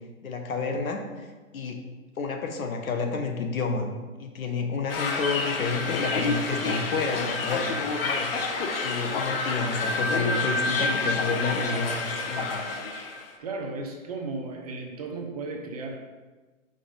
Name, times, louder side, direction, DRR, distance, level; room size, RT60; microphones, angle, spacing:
voice 1, 0.2-1.3 1.5-1.8 2.2-3.9 4.2-8.5 8.8-12.6, left 4 dB, 70° left, 4 dB, 1.2 m, -30 dB
sound 1, 4.9-13.3, left 3 dB, 40° left, 0.8 m, -28 dB
voice 2, 13.4-16.0, right 3 dB, 30° right, 2 dB, 0.6 m, -35 dB
5.2 x 4.1 x 5.2 m, 1.3 s
hypercardioid pair, 150°, 42 cm